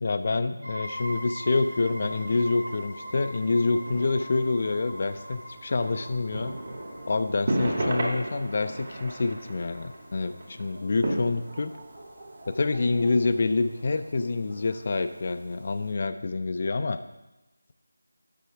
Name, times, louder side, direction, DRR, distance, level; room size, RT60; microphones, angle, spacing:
voice 1, 0.0-6.5 7.1-11.7 12.5-17.0, left 3 dB, 40° left, 9 dB, 0.4 m, -27 dB
sound 1, 0.6-12.1, equal, 90° right, 2.1 m, -43 dB
sound 2, 0.8-15.9, right 1 dB, 45° right, 1.9 m, -37 dB
8.2 x 6.0 x 5.8 m, 1.0 s
figure-of-eight pair, 165°, 0 cm